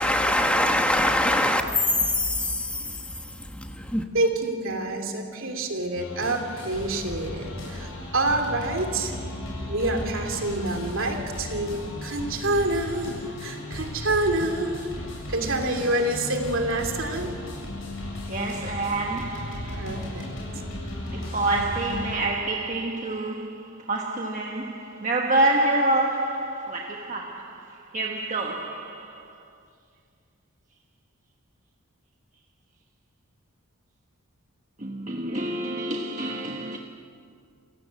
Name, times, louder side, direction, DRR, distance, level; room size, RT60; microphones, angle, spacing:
voice 1, 0.0-4.1, left 1 dB, 5° left, 1.2 m, -24 dB
voice 2, 4.1-9.1 9.7-14.9 15.3-17.3 19.8-20.2, right 2 dB, 65° right, 3.1 m, -27 dB
sound 1, 5.9-22.2, left 1 dB, 60° left, 7.6 m, -35 dB
voice 3, 18.3-20.1 21.1-29.4 34.8-36.8, right 2 dB, 35° right, 1.3 m, -27 dB
28.5 x 16.5 x 7.7 m
head